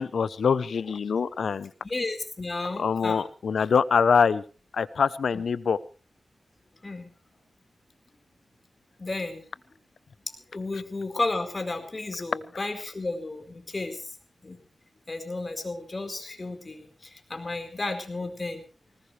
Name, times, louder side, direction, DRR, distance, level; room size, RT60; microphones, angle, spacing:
voice 1, 0.0-1.7 2.8-4.4 4.7-5.8, left 6 dB, 80° left, 16 dB, 0.8 m, -24 dB
voice 2, 1.8-3.3 6.8-7.1 9.0-9.4 10.5-14.1 14.4-14.6 15.1-18.6, left 2 dB, 35° left, 6 dB, 4.6 m, -33 dB
20.0 x 19.5 x 3.3 m, 0.37 s
cardioid pair, 70°, 0 cm